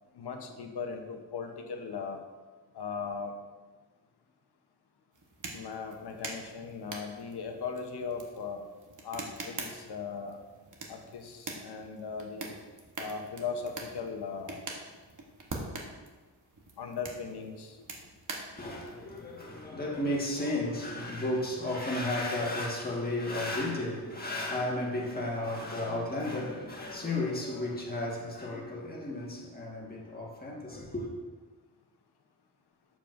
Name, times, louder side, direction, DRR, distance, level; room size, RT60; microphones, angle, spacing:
voice 1, 0.1-2.2 2.7-3.3 5.5-8.6 9.0-10.4 10.9-12.5 13.0-14.6 16.8-17.8, left 5 dB, 75° left, 0.9 m, -38 dB
sound 1, 5.1-19.4, right 3 dB, 50° right, 1.1 m, -44 dB
voice 2, 18.5-31.1, left 1 dB, 25° left, 1.6 m, -33 dB
7.4 x 6.9 x 2.6 m
wide cardioid pair, 100°, 40 cm